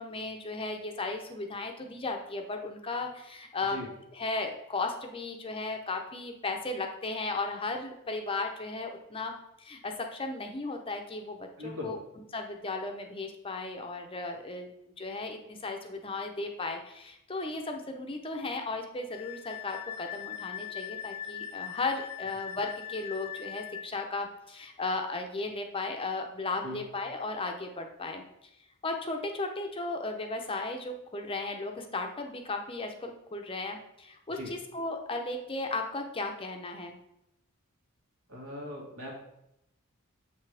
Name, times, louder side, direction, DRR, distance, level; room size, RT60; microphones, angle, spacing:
voice 1, 0.0-3.8 4.1-12.0 12.3-14.7 15.0-28.2 28.8-37.0, left 3 dB, 25° left, 4 dB, 0.6 m, -35 dB
voice 2, 11.6-11.9 26.6-26.8 34.3-34.5 38.3-39.2, left 1 dB, 75° right, -2 dB, 2.2 m, -39 dB
Wind instrument woodwind instrument, 19.1-23.9, left 10 dB, 80° left, 0.4 m, -40 dB
7.6 x 5.8 x 3.4 m, 0.82 s
head